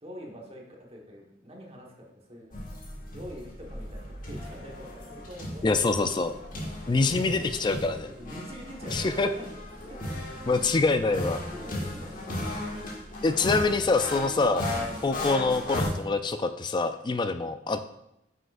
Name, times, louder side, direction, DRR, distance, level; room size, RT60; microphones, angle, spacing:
voice 1, 0.0-2.6 3.1-6.4 6.8-7.0 8.1-10.1 10.4-10.7 11.5-13.0, equal, 30° right, -1 dB, 1.3 m, -45 dB
sound 1, 2.5-15.9, left 1 dB, 45° left, 1.7 m, -36 dB
voice 2, 5.6-6.3 6.9-8.1 8.9-9.3 10.5-11.4 13.2-14.7 15.0-17.8, left 3 dB, 25° left, 9 dB, 0.3 m, -25 dB
9.0 x 6.4 x 2.5 m, 0.82 s
head